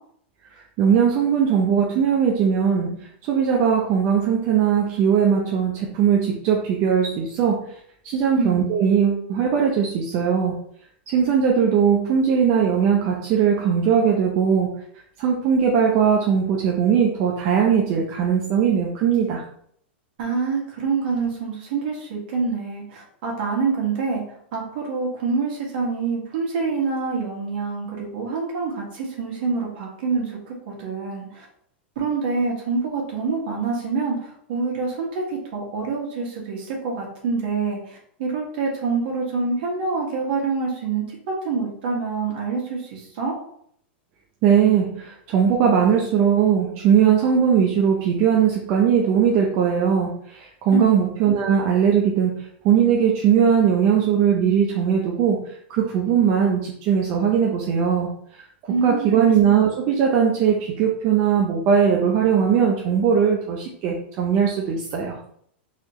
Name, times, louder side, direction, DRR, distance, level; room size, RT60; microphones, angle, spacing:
voice 1, 0.8-7.7 8.0-10.6 11.1-14.7 15.2-19.4 44.4-58.4 58.8-65.1, right 7 dB, 40° right, -1 dB, 0.6 m, -19 dB
voice 2, 20.2-24.2 24.5-31.4 31.9-43.3 50.7-51.0 58.7-59.2, right 4 dB, 55° right, -2 dB, 1.6 m, -26 dB
4.0 x 2.7 x 3.0 m, 0.66 s
supercardioid pair, 145°, 6 cm